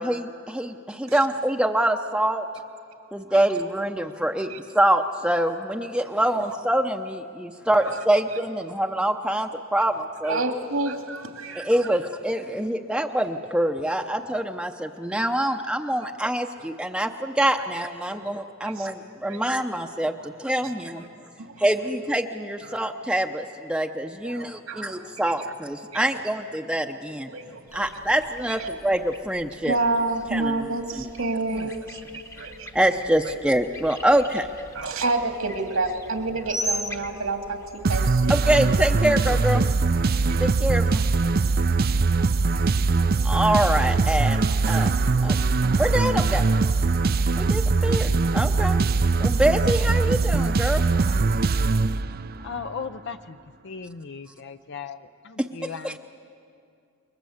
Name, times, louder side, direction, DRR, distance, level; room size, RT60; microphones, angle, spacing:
voice 1, 0.0-2.5 3.1-4.5 4.7-10.4 11.6-21.0 21.6-27.3 27.7-29.8 30.3-30.5 31.0-31.1 32.7-34.5 38.3-39.6 40.4-41.0 43.2-44.4 44.7-44.9 45.2-45.4 45.8-46.5 47.4-48.8 49.2-50.8 55.4-55.5 55.8-55.9, right 1 dB, 5° right, 4 dB, 0.7 m, -25 dB
voice 2, 10.2-11.7 17.6-17.7 18.1-18.3 18.6-18.9 19.2-19.4 20.2-20.3 21.0-21.1 21.4-21.6 22.7-22.8 24.2-25.0 25.3-25.4 25.9-26.2 27.3-27.9 28.6-28.7 29.6-32.7 33.2-33.4 34.7-38.4 40.3-40.4, right 2 dB, 80° right, 4 dB, 2.4 m, -29 dB
sound 1, 27.7-38.0, equal, 15° left, 1.0 m, -39 dB
sound 2, 37.8-52.4, right 3 dB, 50° right, 0.5 m, -21 dB
voice 3, 52.4-53.4 53.6-56.0, left 5 dB, 60° left, 9 dB, 0.6 m, -37 dB
28.5 x 22.5 x 8.0 m, 2.4 s
head